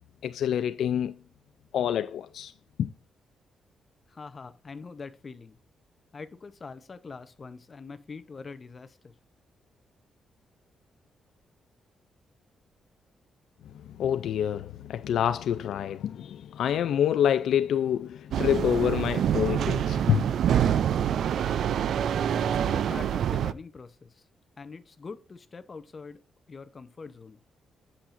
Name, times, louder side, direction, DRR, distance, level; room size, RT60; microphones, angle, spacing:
voice 1, 0.2-1.1 1.7-2.5 2.8-2.9 13.7-20.3, left 9 dB, 75° left, 0.4 m, -27 dB
voice 2, 4.1-5.6 6.1-9.1 22.4-24.2 24.6-26.2 26.5-27.4, left 4 dB, 30° left, 0.7 m, -44 dB
sound 1, 18.3-23.5, right 9 dB, 70° right, 0.4 m, -26 dB
8.6 x 7.2 x 2.5 m
cardioid pair, 135°, 0 cm